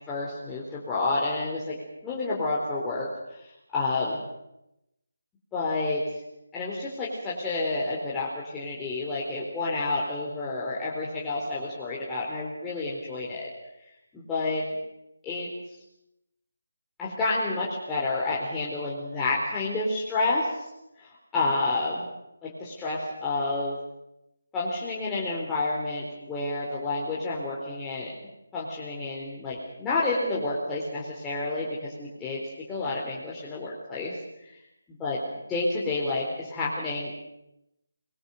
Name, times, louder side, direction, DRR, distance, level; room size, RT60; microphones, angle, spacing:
voice 1, 0.1-1.8 2.0-3.4 3.7-4.2 5.5-6.0 6.5-13.5 14.1-14.6 15.2-15.5 17.0-20.5 21.0-22.0 22.4-23.8 24.5-28.1 28.5-32.4 32.7-34.2 35.0-35.2 35.5-37.1, left 3 dB, 10° left, -7 dB, 4.0 m, -29 dB
24.5 x 21.5 x 6.6 m, 0.87 s
figure-of-eight pair, 160°, 0 cm